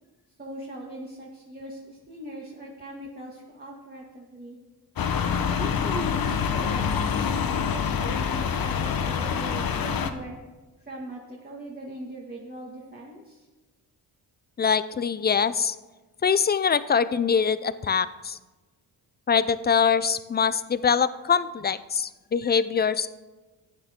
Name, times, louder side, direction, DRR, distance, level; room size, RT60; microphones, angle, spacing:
voice 1, 0.4-4.6 5.4-10.4 10.8-13.5, right 1 dB, 20° right, -2 dB, 1.7 m, -40 dB
sound 1, 5.0-10.1, left 6 dB, 55° left, 1.0 m, -26 dB
voice 2, 14.6-15.8 16.2-18.4 19.3-23.1, left 6 dB, 25° left, 15 dB, 0.4 m, -23 dB
14.5 x 9.0 x 3.6 m, 1.2 s
cardioid pair, 90°, 41 cm